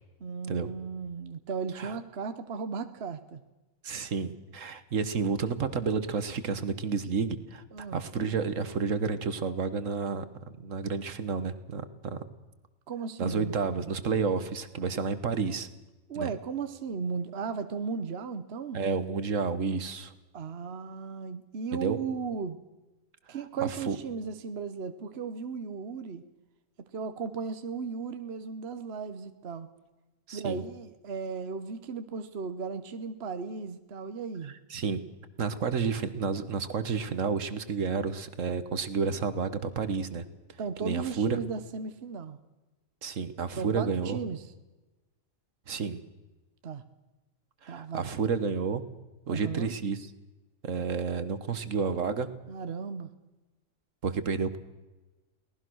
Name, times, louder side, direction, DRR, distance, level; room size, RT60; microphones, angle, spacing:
voice 1, 0.2-3.4 7.7-8.0 12.9-13.9 16.1-18.8 20.3-22.6 23.3-26.2 26.8-29.7 30.3-34.5 40.6-42.4 43.6-44.5 46.6-46.8 47.7-48.1 49.3-49.7 52.5-53.1, right 5 dB, 55° right, 10 dB, 1.2 m, -36 dB
voice 2, 3.8-10.2 10.6-12.2 13.2-15.7 16.1-16.3 18.7-20.1 21.7-22.0 23.6-24.0 30.3-30.6 34.4-35.0 35.4-40.3 40.8-41.4 43.0-44.2 45.7-46.0 47.6-48.8 49.3-50.1 50.6-52.3 54.0-54.6, right 5 dB, 75° right, 12 dB, 1.7 m, -30 dB
23.5 x 18.5 x 6.3 m, 1.1 s
omnidirectional pair, 1.3 m